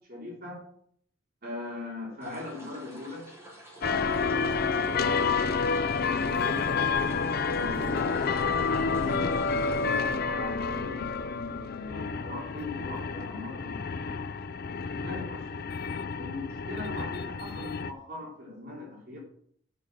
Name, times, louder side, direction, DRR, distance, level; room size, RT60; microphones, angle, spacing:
voice 1, 0.1-0.6 1.4-3.3 3.9-5.4 6.1-6.7 7.4-8.6 9.0-11.1 11.6-14.2 15.0-15.7 16.2-19.2, left 2 dB, 50° right, -3 dB, 3.2 m, -40 dB
sound 1, 2.2-10.2, right 1 dB, 15° right, 3.1 m, -49 dB
sound 2, 3.8-17.9, left 5 dB, 50° left, 0.5 m, -29 dB
8.3 x 6.7 x 7.4 m, 0.64 s
head